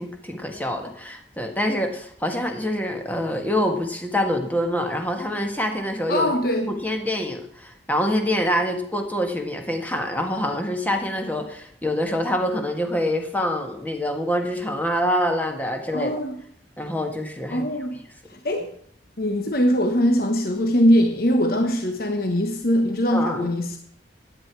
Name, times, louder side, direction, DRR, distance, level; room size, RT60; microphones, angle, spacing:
voice 1, 0.0-6.3 6.7-16.1 16.8-17.6 23.1-23.5, equal, 10° left, 3 dB, 1.6 m, -25 dB
voice 2, 6.1-6.7 15.9-16.4 17.5-18.0 18.3-18.7 19.2-23.8, equal, 55° left, 5 dB, 1.1 m, -21 dB
14.5 x 10.0 x 4.7 m, 0.66 s
head